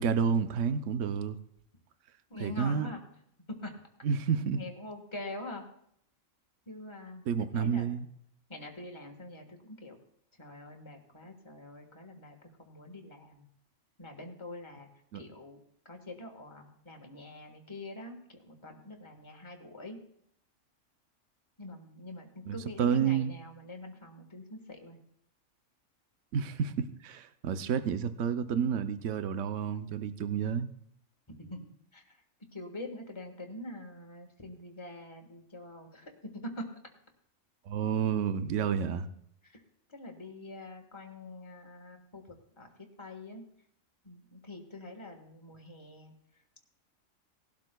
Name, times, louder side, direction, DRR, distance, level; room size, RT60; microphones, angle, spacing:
voice 1, 0.0-1.4 2.4-2.9 4.0-4.6 7.3-8.1 15.1-15.2 22.5-23.3 26.3-30.7 37.7-39.1, right 7 dB, 70° right, 10 dB, 1.0 m, -30 dB
voice 2, 2.3-3.0 3.5-3.7 4.5-5.6 6.7-7.3 7.5-7.9 8.5-10.0 10.4-13.5 14.0-14.9 15.1-15.6 15.8-20.0 21.6-25.0 31.3-32.1 32.5-36.6 39.4-39.6 39.9-42.2 42.6-42.7 43.0-43.4 44.0-46.1, left 1 dB, 20° left, 3 dB, 1.4 m, -45 dB
19.0 x 12.0 x 2.3 m, 0.70 s
omnidirectional pair, 1.4 m